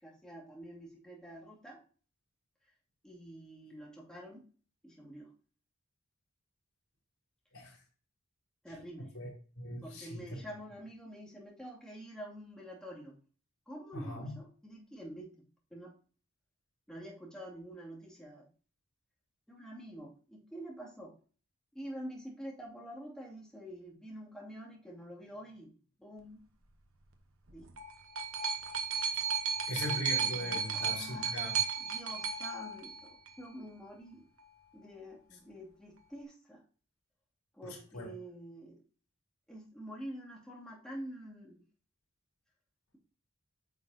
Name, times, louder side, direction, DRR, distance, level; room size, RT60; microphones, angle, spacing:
voice 1, 0.0-1.8 3.0-4.4 4.8-5.3 8.6-9.1 9.8-13.2 13.7-15.3 15.7-15.9 16.9-18.5 19.5-21.1 21.7-25.7 26.0-26.4 27.5-27.7 30.7-34.3 34.7-36.6 37.5-38.8 39.5-41.6, equal, 5° left, -4 dB, 2.5 m, -47 dB
voice 2, 9.6-10.4 13.9-14.4 29.7-31.6 37.6-38.1, left 1 dB, 80° left, -3 dB, 4.0 m, -40 dB
sound 1, 27.5-33.5 34.4-34.5, right 6 dB, 70° right, 1.1 m, -34 dB
9.5 x 6.3 x 2.8 m, 0.39 s
head